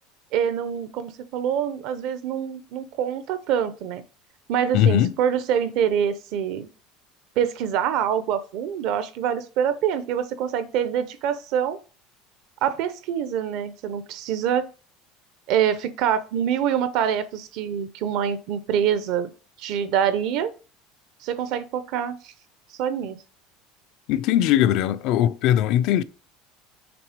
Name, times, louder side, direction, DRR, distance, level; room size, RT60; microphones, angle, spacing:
voice 1, 0.3-4.0 4.5-6.7 7.4-11.8 12.6-14.7 15.5-19.3 19.6-20.5 21.2-22.3 22.8-23.2, right 9 dB, 55° right, 0.6 m, -25 dB
voice 2, 4.7-5.1 24.1-26.0, left 11 dB, 50° left, 0.4 m, -20 dB
5.9 x 3.6 x 5.1 m
cardioid pair, 165°, 0 cm